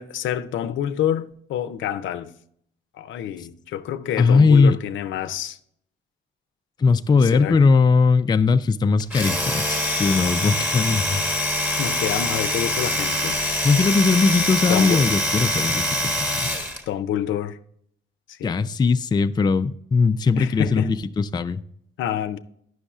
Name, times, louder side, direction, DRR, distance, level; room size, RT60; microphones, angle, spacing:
voice 1, 0.0-2.3 2.9-5.6 7.2-7.6 11.8-13.4 14.7-15.1 16.9-17.6 18.3-18.6 20.4-20.9 22.0-22.4, left 10 dB, 75° left, 0.5 m, -27 dB
voice 2, 4.2-4.8 6.8-11.2 13.6-16.5 18.4-21.6, left 4 dB, 20° left, 0.4 m, -19 dB
Domestic sounds home sounds, 9.0-16.8, left 1 dB, 10° right, 1.2 m, -24 dB
9.8 x 6.3 x 2.4 m
cardioid pair, 90°, 20 cm